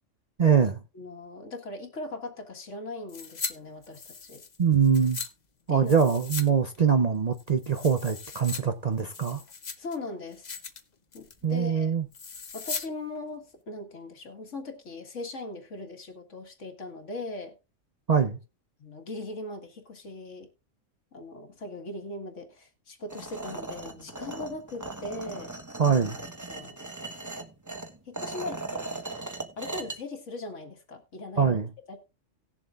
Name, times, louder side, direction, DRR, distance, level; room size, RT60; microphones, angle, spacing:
voice 1, 0.4-0.8 4.6-5.2 5.7-9.4 11.4-12.0 18.1-18.4 25.8-26.2 31.4-31.7, right 6 dB, 40° right, 0.6 m, -23 dB
voice 2, 0.9-4.4 5.7-6.0 9.8-10.6 11.1-11.9 12.5-17.5 18.8-20.5 21.1-25.5 26.5-26.9 28.1-29.0 29.6-31.6 31.9-32.0, left 2 dB, 70° left, 2.1 m, -39 dB
sound 1, 3.1-3.5 3.8-5.3 5.9-6.5 6.7-6.8 7.3-8.6 9.0-10.0 10.3-10.8 11.1-11.4 12.1-12.9 13.2-13.3, left 5 dB, 40° left, 0.9 m, -38 dB
sound 2, 23.1-30.0, right 2 dB, 15° right, 1.2 m, -38 dB
18.5 x 7.2 x 2.5 m
omnidirectional pair, 1.3 m